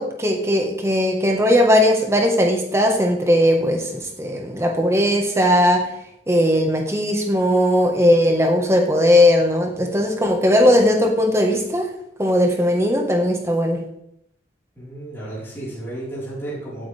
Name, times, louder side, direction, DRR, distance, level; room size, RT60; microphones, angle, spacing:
voice 1, 0.0-5.9 6.3-11.9 12.2-13.8, left 1 dB, 15° right, 2 dB, 1.5 m, -18 dB
voice 2, 14.7-16.9, right 1 dB, 15° left, -8 dB, 4.7 m, -32 dB
16.0 x 8.8 x 3.5 m, 0.77 s
head